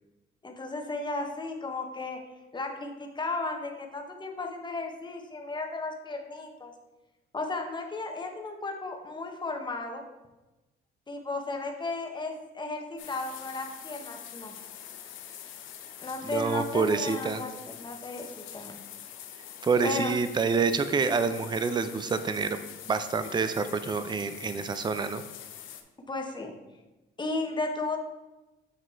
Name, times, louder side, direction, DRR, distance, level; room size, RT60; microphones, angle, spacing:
voice 1, 0.4-2.2 2.5-6.7 7.3-10.0 11.1-14.5 16.0-17.5 17.8-18.8 19.8-20.1 26.1-26.5 27.2-28.0, left 3 dB, 20° left, 3 dB, 1.0 m, -34 dB
sound 1, 13.0-25.8, left 10 dB, 85° left, 0.6 m, -45 dB
voice 2, 16.2-17.4 19.6-22.6 22.9-25.2, right 5 dB, 20° right, 11 dB, 0.4 m, -27 dB
8.3 x 3.0 x 4.4 m, 1.1 s
cardioid pair, 90°, 20 cm